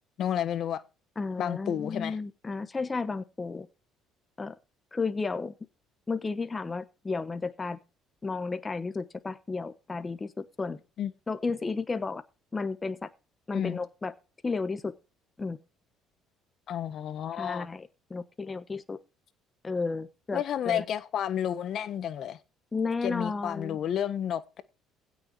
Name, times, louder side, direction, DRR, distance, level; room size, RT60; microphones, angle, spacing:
voice 1, 0.2-0.8 1.4-2.2 11.0-11.1 13.5-13.8 16.7-17.7 20.3-22.4 23.0-24.6, left 10 dB, 55° left, 1.3 m, -31 dB
voice 2, 1.2-3.7 4.4-4.5 4.9-5.5 6.1-7.8 8.2-10.8 11.3-12.2 12.5-13.1 13.5-14.1 14.4-14.9 15.4-15.6 17.4-19.0 19.6-20.8 22.7-23.8, left 4 dB, 20° left, 1.0 m, -33 dB
16.0 x 6.5 x 4.7 m
cardioid pair, 110°, 0 cm